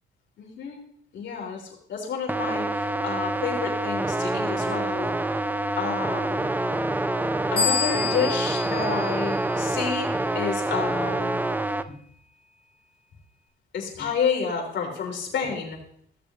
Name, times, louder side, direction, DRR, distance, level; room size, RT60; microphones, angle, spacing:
voice 1, 0.4-0.8 1.1-5.1 5.8-6.5 7.5-10.1 10.3-11.4 11.9-12.0 13.7-15.8, left 6 dB, 65° left, 0 dB, 3.1 m, -30 dB
sound 1, 2.3-11.8, right 2 dB, 10° right, 0.5 m, -27 dB
sound 2, 7.6-10.0, left 6 dB, 50° left, 1.8 m, -29 dB
15.5 x 6.9 x 2.4 m, 0.66 s
cardioid pair, 90°, 20 cm